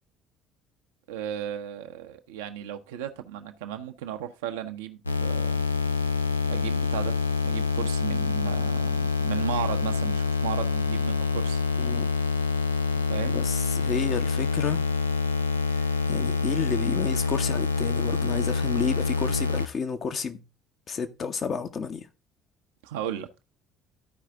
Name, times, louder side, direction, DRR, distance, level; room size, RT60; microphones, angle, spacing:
voice 1, 1.1-5.6 6.5-11.6 13.1-13.4 22.8-23.3, right 10 dB, 70° right, 0.8 m, -35 dB
sound 1, 5.1-19.7, left 4 dB, 90° left, 0.4 m, -26 dB
voice 2, 13.3-14.8 16.1-20.4 20.9-22.1, left 6 dB, 40° left, 1.0 m, -31 dB
13.0 x 4.9 x 3.6 m
figure-of-eight pair, 55°, 0 cm